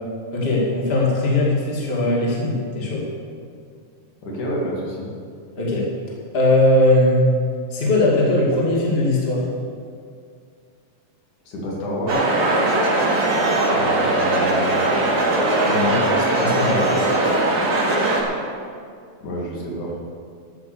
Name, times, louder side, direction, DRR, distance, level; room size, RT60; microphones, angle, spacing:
voice 1, 0.3-3.1 5.6-5.9 6.3-7.2 7.7-9.5 13.7-15.2 15.6-17.1, left 2 dB, 20° left, -4 dB, 2.3 m, -20 dB
voice 2, 4.2-5.1 11.5-12.3 19.2-20.0, equal, 70° left, -4 dB, 3.8 m, -28 dB
sound 1, 12.1-18.2, right 2 dB, 70° right, 3.6 m, -20 dB
13.5 x 8.7 x 7.1 m, 2.2 s
omnidirectional pair, 3.7 m